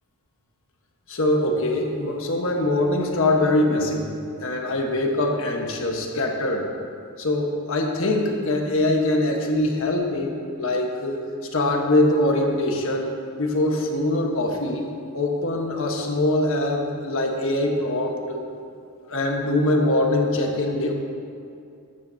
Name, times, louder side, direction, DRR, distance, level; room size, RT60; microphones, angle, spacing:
voice 1, 1.1-4.1 4.4-6.6 7.2-11.3 11.5-13.1 13.4-14.9 15.1-18.4 19.1-20.9, left 1 dB, 65° left, 1 dB, 1.3 m, -23 dB
14.5 x 11.5 x 2.8 m, 2.4 s
head